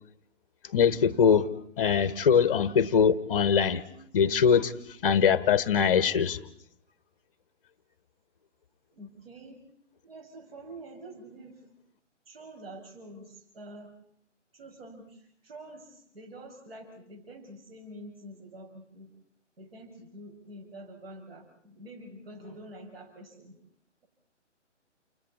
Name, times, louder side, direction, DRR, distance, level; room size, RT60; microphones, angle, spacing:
voice 1, 0.7-1.5 1.8-3.8 4.1-4.7 5.0-6.4, left 7 dB, 30° left, 1.1 m, -22 dB
voice 2, 8.9-9.6 10.0-11.6 12.3-13.9 14.5-15.2 15.4-19.1 19.6-23.5, right 1 dB, 50° right, 6.7 m, -47 dB
30.0 x 29.0 x 4.2 m
figure-of-eight pair, 145°, 37 cm